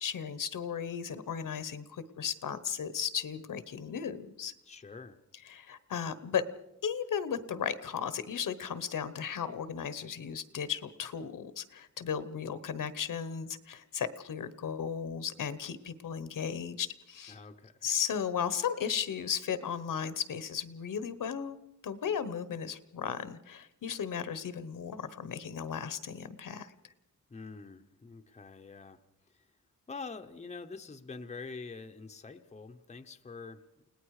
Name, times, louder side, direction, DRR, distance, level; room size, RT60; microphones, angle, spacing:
voice 1, 0.0-4.5 5.5-6.4 6.8-17.4 17.8-21.6 21.8-26.7, left 7 dB, 75° left, 14 dB, 1.2 m, -35 dB
voice 2, 4.7-5.2 17.3-17.9 27.3-29.0 29.3-29.5 29.9-33.9, left 4 dB, 20° left, 7 dB, 0.8 m, -46 dB
29.5 x 18.5 x 4.9 m, 0.87 s
wide cardioid pair, 175°, 33 cm